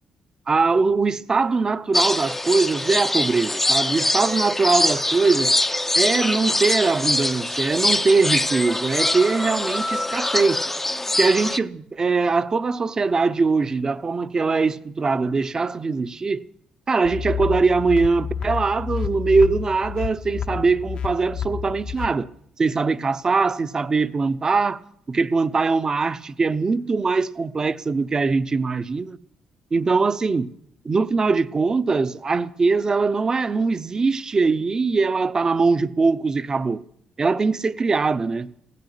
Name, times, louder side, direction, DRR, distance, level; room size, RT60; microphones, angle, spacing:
voice 1, 0.5-5.6 5.9-10.6 11.1-16.4 16.9-22.3 22.6-24.8 25.1-29.2 29.7-30.5 30.8-36.8 37.2-38.5, right 4 dB, 30° right, 0.7 m, -21 dB
sound 1, 1.9-11.6, left 1 dB, 10° left, 0.5 m, -23 dB
sound 2, 17.0-22.1, left 8 dB, 55° left, 0.8 m, -30 dB
16.0 x 11.0 x 8.3 m
cardioid pair, 95°, 2 cm